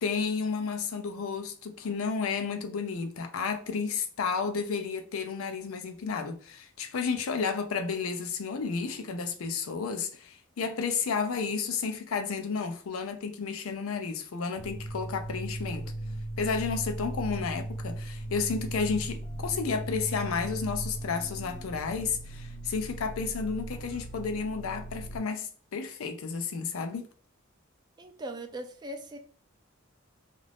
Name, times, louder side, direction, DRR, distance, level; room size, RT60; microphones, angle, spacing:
voice 1, 0.0-15.9 16.4-27.1, left 5 dB, 85° left, 0.5 m, -32 dB
sound 1, 14.6-25.2, right 1 dB, 35° left, 0.5 m, -38 dB
voice 2, 28.0-29.2, right 1 dB, 20° right, 0.4 m, -39 dB
2.5 x 2.5 x 3.3 m
head